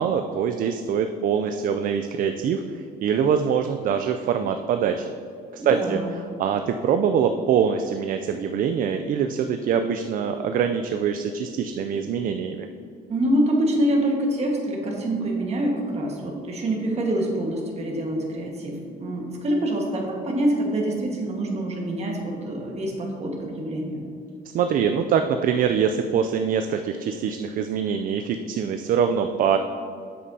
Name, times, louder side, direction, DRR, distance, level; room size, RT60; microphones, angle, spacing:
voice 1, 0.0-5.1 5.5-12.7 24.5-29.6, right 7 dB, 55° right, 7 dB, 0.4 m, -24 dB
voice 2, 5.6-6.1 13.1-24.0, right 1 dB, 40° right, 0 dB, 1.6 m, -25 dB
8.4 x 7.3 x 2.8 m, 2.4 s
cardioid pair, 110°, 17 cm